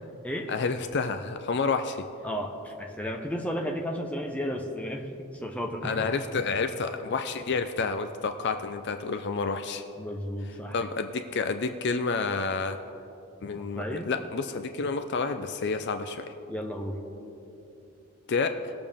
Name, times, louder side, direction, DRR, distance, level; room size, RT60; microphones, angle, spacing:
voice 1, 0.5-2.0 5.8-9.8 10.5-12.8 13.4-16.3 18.3-18.7, left 4 dB, 50° left, 8 dB, 0.4 m, -29 dB
voice 2, 2.2-5.9 10.0-10.8 13.6-14.1 16.5-17.0, equal, 5° left, 2 dB, 0.8 m, -33 dB
20.0 x 6.9 x 3.6 m, 2.8 s
head